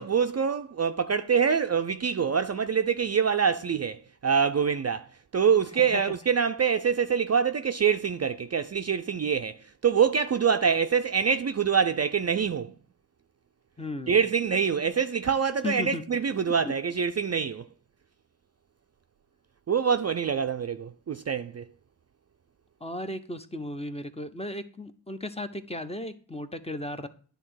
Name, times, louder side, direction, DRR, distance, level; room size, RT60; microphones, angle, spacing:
voice 1, 0.0-12.7 14.1-17.7 19.7-21.6, right 7 dB, 40° right, 0.4 m, -25 dB
voice 2, 13.8-14.2 15.6-16.0 16.6-16.7 22.8-27.1, left 2 dB, 15° left, 0.6 m, -35 dB
10.0 x 3.4 x 6.2 m
wide cardioid pair, 75°, 44 cm